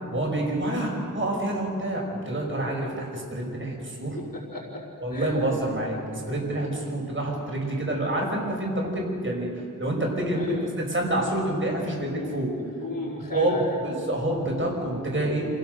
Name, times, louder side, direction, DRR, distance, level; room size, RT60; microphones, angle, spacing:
voice 1, 0.1-4.2 5.0-9.5 9.8-10.4 10.8-12.5 13.3-13.6 13.8-15.5, right 1 dB, 35° right, -1 dB, 5.8 m, -27 dB
voice 2, 3.8-4.8 5.1-5.3 10.3-10.7 12.1-12.4 12.7-13.8, left 2 dB, 80° left, -2 dB, 4.5 m, -34 dB
27.0 x 16.5 x 6.7 m, 2.6 s
wide cardioid pair, 60°, 33 cm